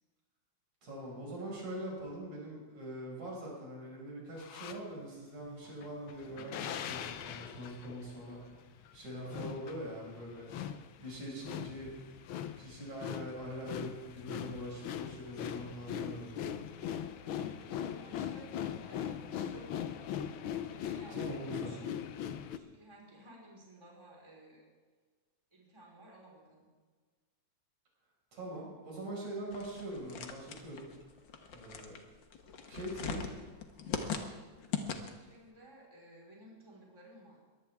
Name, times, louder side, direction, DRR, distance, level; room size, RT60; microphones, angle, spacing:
voice 1, 0.8-8.5 8.9-10.5 11.0-12.0 12.6-17.3 21.1-21.8 28.3-30.9 31.5-32.0 32.7-33.4, right 1 dB, 70° right, -3 dB, 6.6 m, -43 dB
sound 1, 4.4-4.8 5.7-22.6, left 9 dB, 90° left, 1.1 m, -41 dB
voice 2, 17.2-20.3 20.6-22.0 22.5-24.6 25.5-26.7 35.0-37.4, right 1 dB, 10° right, -3 dB, 4.4 m, -56 dB
sound 2, 29.5-35.4, left 6 dB, 50° left, 1.5 m, -40 dB
22.0 x 16.5 x 3.6 m, 1.5 s
omnidirectional pair, 3.4 m